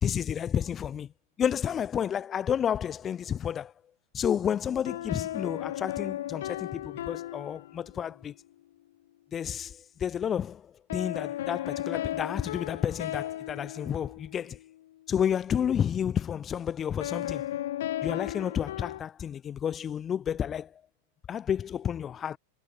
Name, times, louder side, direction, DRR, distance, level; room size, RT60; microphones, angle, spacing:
voice 1, 0.0-1.1 1.4-3.7 4.1-8.3 9.3-14.6 15.1-17.5 18.0-20.7 21.3-22.4, left 8 dB, 15° left, 1.3 m, -30 dB
sound 1, 4.8-8.2 10.9-14.8 17.0-19.0, left 13 dB, 70° left, 0.7 m, -35 dB
supercardioid pair, 170°, 0 cm